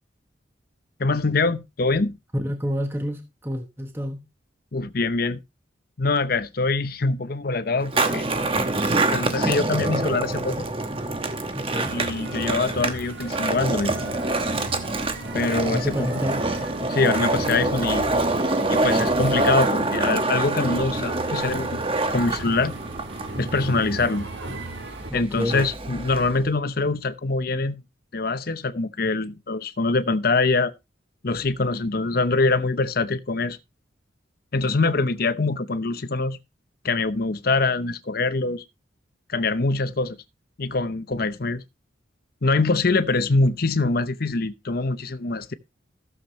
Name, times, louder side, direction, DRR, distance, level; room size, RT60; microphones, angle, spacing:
voice 1, 1.0-2.2 4.7-5.4 6.0-8.3 9.1-10.7 11.9-13.9 15.3-16.1 16.9-18.1 18.7-21.8 22.1-22.8 23.4-24.3 25.1-27.8 28.1-30.7 31.2-33.6 34.5-36.4 36.8-38.6 39.3-40.2 40.6-41.6 42.4-45.5, left 3 dB, 50° left, 0.7 m, -24 dB
voice 2, 2.3-4.2 11.5-12.0 15.7-16.6 25.1-25.7, equal, 10° right, 1.1 m, -28 dB
Skateboard, 7.8-26.5, right 2 dB, 30° right, 1.0 m, -26 dB
sound 1, 11.7-25.1, right 2 dB, 65° right, 1.6 m, -37 dB
15.0 x 7.3 x 3.2 m
head